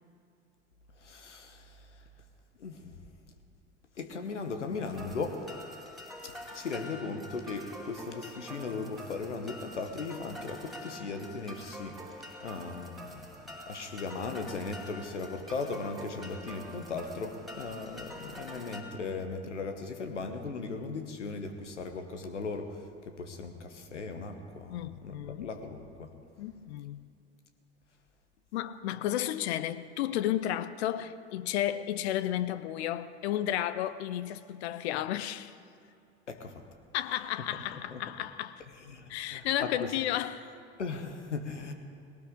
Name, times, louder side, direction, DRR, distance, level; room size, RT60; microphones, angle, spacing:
voice 1, 1.0-1.8 2.6-2.9 4.0-5.4 6.2-12.0 12.4-13.2 13.7-26.1 36.3-36.6 37.7-38.0 38.9-39.9 40.8-41.7, left 4 dB, 85° left, 1.2 m, -38 dB
sound 1, 4.9-18.8, equal, ahead, 2.5 m, -46 dB
voice 2, 24.7-25.5 26.4-27.1 28.5-35.5 36.9-38.6 39.1-40.5, left 12 dB, 65° left, 0.7 m, -33 dB
19.0 x 18.0 x 3.8 m
figure-of-eight pair, 70°, 35 cm